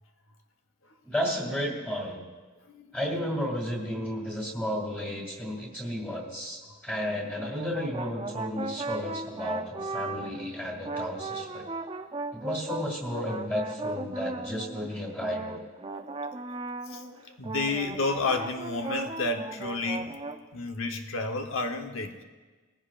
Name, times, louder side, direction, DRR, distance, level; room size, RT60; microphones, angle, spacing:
voice 1, 1.1-2.3 2.9-11.6 12.3-15.6, equal, 10° left, -2 dB, 2.4 m, -33 dB
sound 1, 7.3-10.5 10.8-17.2 17.4-20.4, right 3 dB, 25° right, 0.6 m, -37 dB
voice 2, 16.9-20.1 20.5-22.2, left 3 dB, 85° left, 4 dB, 1.0 m, -31 dB
20.5 x 15.5 x 2.5 m, 1.3 s
head